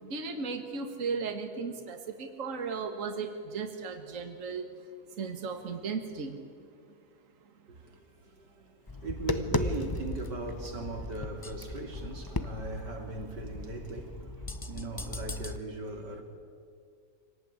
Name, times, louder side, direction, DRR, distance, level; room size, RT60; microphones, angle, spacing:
voice 1, 0.1-4.6 5.2-6.4, right 5 dB, 50° right, 2.0 m, -35 dB
voice 2, 7.7-14.3 14.7-16.2, right 3 dB, 90° right, 3.3 m, -39 dB
Tap, 8.9-15.6, left 2 dB, 20° left, 0.5 m, -36 dB
25.5 x 18.0 x 9.7 m
omnidirectional pair, 1.8 m